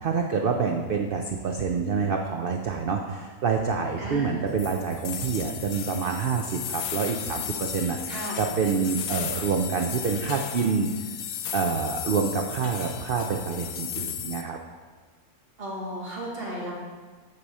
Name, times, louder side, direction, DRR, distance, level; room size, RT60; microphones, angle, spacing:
voice 1, 0.0-10.9 11.5-14.6, right 5 dB, 85° right, 2 dB, 0.5 m, -27 dB
voice 2, 4.0-4.4 8.1-8.4 15.6-16.7, right 1 dB, 40° right, -4 dB, 1.7 m, -34 dB
sound 1, 4.6-14.4, left 9 dB, 80° left, 1.1 m, -35 dB
9.4 x 4.8 x 4.2 m, 1.5 s
omnidirectional pair, 1.6 m